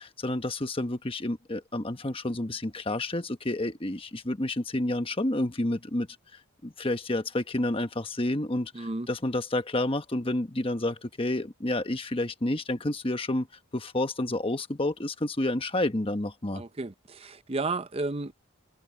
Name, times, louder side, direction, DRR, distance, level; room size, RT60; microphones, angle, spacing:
voice 1, 0.0-6.1 6.6-13.5 13.7-16.6, left 1 dB, 25° left, 1.2 m, -29 dB
voice 2, 8.8-9.1 16.5-16.9 17.2-18.4, right 3 dB, 25° right, 0.6 m, -32 dB
head